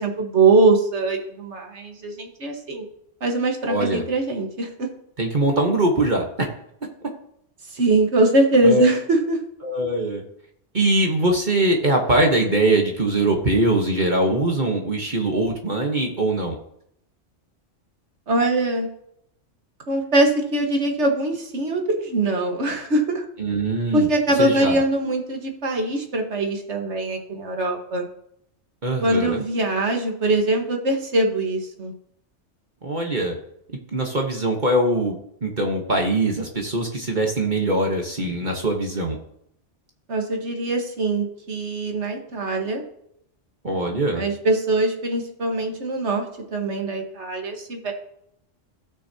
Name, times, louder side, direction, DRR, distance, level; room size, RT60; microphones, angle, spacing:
voice 1, 0.0-2.9 3.2-4.9 7.7-9.4 18.3-18.9 19.9-23.3 23.9-28.1 29.0-31.9 40.1-42.8 44.2-47.9, right 2 dB, 65° right, 3 dB, 1.8 m, -22 dB
voice 2, 3.7-4.0 5.2-6.5 8.6-8.9 9.6-10.2 10.7-16.6 23.4-24.1 24.4-24.8 28.8-29.4 32.8-33.3 33.9-39.2 43.6-44.2, right 2 dB, 40° right, 1 dB, 1.3 m, -22 dB
16.5 x 6.2 x 2.8 m, 0.73 s
omnidirectional pair, 1.3 m